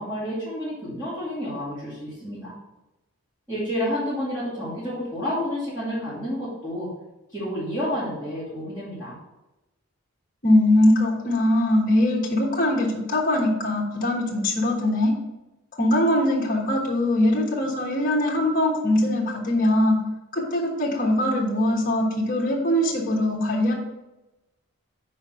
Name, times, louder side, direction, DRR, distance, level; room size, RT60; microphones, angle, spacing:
voice 1, 0.0-2.5 3.5-6.9 7.3-9.2, equal, 15° right, -14 dB, 2.6 m, -30 dB
voice 2, 10.4-15.1 15.8-20.0 20.3-23.7, left 1 dB, 40° left, -3 dB, 1.2 m, -21 dB
5.8 x 4.5 x 5.6 m, 0.99 s
head